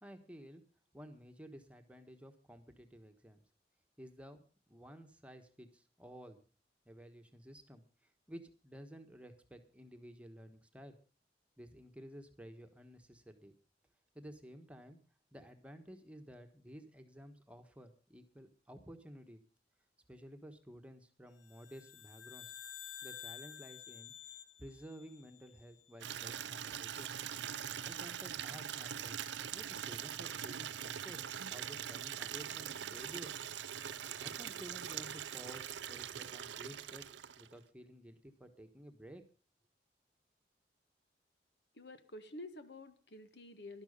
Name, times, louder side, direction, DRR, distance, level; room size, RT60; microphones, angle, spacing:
voice 1, 0.0-0.6 0.9-3.4 4.0-4.4 4.7-6.4 6.8-10.9 11.6-13.5 14.1-15.0 15.3-19.4 20.1-22.5 23.0-24.1 24.6-27.1 27.8-29.2 29.5-31.3 31.5-33.3 34.2-37.1 37.4-39.2, equal, 5° right, 6 dB, 1.3 m, -53 dB
sound 1, 21.4-26.0, left 9 dB, 85° left, 1.3 m, -51 dB
Water tap faucet / Liquid, 26.0-37.6, right 9 dB, 90° right, 0.6 m, -42 dB
voice 2, 41.7-43.8, left 1 dB, 65° left, 10 dB, 1.3 m, -50 dB
12.0 x 12.0 x 5.4 m, 0.37 s
head